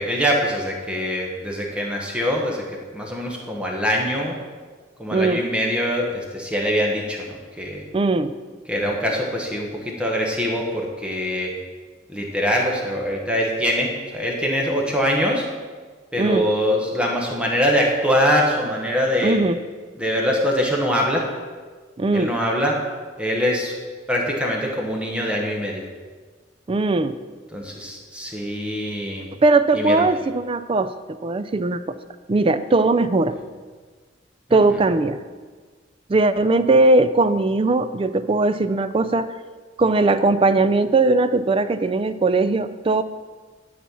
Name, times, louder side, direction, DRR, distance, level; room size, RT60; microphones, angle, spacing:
voice 1, 0.0-2.6 2.9-4.4 5.0-7.8 8.7-11.5 12.1-15.4 16.1-19.4 20.0-21.3 22.1-22.8 23.2-23.7 24.1-25.8 27.5-29.3 29.7-30.1 34.5-34.8, equal, 5° right, -1 dB, 1.2 m, -23 dB
voice 2, 5.1-5.4 7.9-8.3 16.2-16.4 19.2-19.6 22.0-22.3 26.7-27.2 29.4-30.9 31.2-31.8 32.3-33.3 34.5-35.2 36.1-39.3 39.8-43.0, right 2 dB, 30° right, 11 dB, 0.4 m, -19 dB
11.0 x 4.2 x 7.1 m, 1.4 s
head